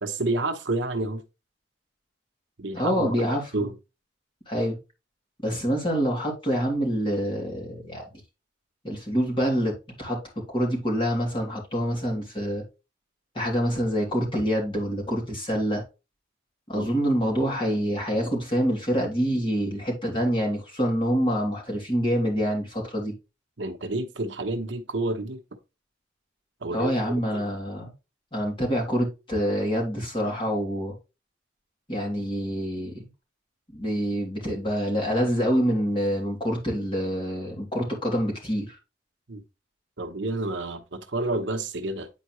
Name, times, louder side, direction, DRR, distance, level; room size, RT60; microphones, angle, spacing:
voice 1, 0.0-1.2 2.6-3.7 16.7-16.9 23.6-25.4 26.6-26.9 39.3-39.4 40.0-42.1, right 2 dB, 70° right, 1.0 m, -29 dB
voice 2, 2.7-3.7 4.5-4.8 5.4-8.1 8.8-12.6 13.3-15.8 16.7-23.1 26.7-27.9 28.3-31.0 31.9-33.0 33.7-38.8, equal, 25° left, 2.9 m, -26 dB
9.2 x 4.6 x 3.1 m
head